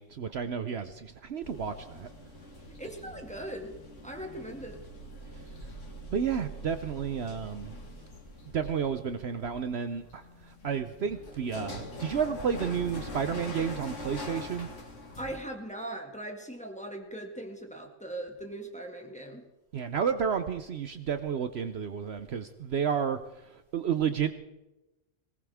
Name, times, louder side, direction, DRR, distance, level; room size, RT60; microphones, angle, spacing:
voice 1, 0.0-2.1 6.1-7.8 8.5-14.7 19.7-24.3, right 7 dB, 60° right, 10 dB, 1.0 m, -31 dB
sound 1, 1.4-15.4, left 1 dB, 80° left, 2.4 m, -43 dB
voice 2, 2.7-3.7 4.0-4.8 15.2-19.4, right 1 dB, 5° left, 2 dB, 2.0 m, -40 dB
21.0 x 18.5 x 3.5 m, 1.0 s
omnidirectional pair, 1.3 m